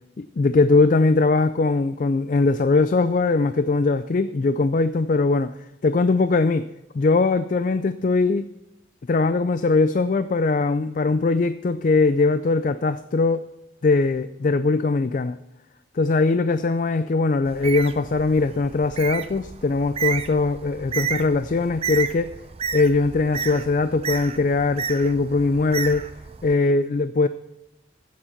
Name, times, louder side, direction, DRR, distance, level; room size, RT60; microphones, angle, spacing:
voice 1, 0.2-5.5 5.8-6.7 6.9-8.5 9.1-13.5 13.8-15.4 15.9-22.3 22.7-26.1 26.4-27.3, left 3 dB, 45° left, 12 dB, 0.4 m, -21 dB
Bird, 17.4-26.5, right 7 dB, 30° right, 0.5 m, -32 dB
15.0 x 7.3 x 5.8 m, 0.90 s
head